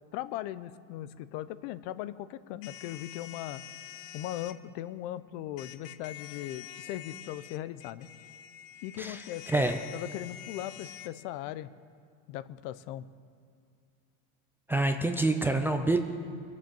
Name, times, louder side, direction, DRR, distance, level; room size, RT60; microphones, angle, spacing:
voice 1, 0.1-3.6 4.1-8.1 8.8-11.7 12.3-13.1, left 13 dB, 60° left, 15 dB, 0.7 m, -39 dB
sound 1, 2.6-4.6 5.6-11.1, left 12 dB, 85° left, 0.9 m, -46 dB
voice 2, 9.5-9.8 14.7-16.0, right 2 dB, 5° right, 5 dB, 0.4 m, -26 dB
22.5 x 7.5 x 7.7 m, 2.3 s
supercardioid pair, 145°, 38 cm